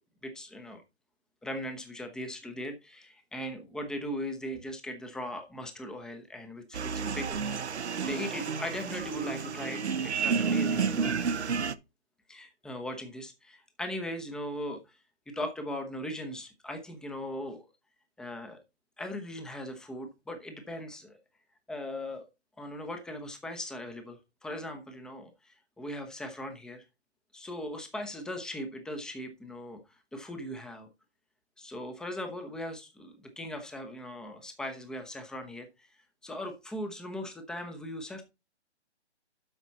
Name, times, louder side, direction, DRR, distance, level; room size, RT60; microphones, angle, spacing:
voice 1, 0.2-0.8 1.4-11.2 12.3-15.0 15.3-17.7 18.2-18.6 19.0-21.2 21.7-22.3 22.6-26.9 27.3-30.9 31.6-35.9 36.2-38.2, left 1 dB, ahead, 6 dB, 0.9 m, -39 dB
sound 1, 6.7-11.7, right 5 dB, 75° right, 1.1 m, -30 dB
12.5 x 5.2 x 4.1 m, 0.26 s
hypercardioid pair, 150°, 34 cm